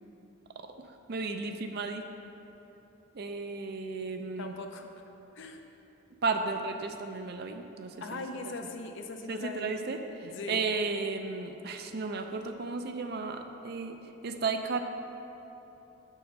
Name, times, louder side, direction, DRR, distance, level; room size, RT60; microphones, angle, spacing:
voice 1, 1.1-2.1 3.1-4.6 6.2-8.2 9.3-14.0 14.2-14.8, right 4 dB, 50° right, 6 dB, 0.4 m, -34 dB
voice 2, 4.4-4.9 5.4-5.6 8.0-9.7 10.2-10.7, left 3 dB, 60° left, 4 dB, 0.6 m, -40 dB
6.3 x 4.6 x 6.6 m, 3.0 s
head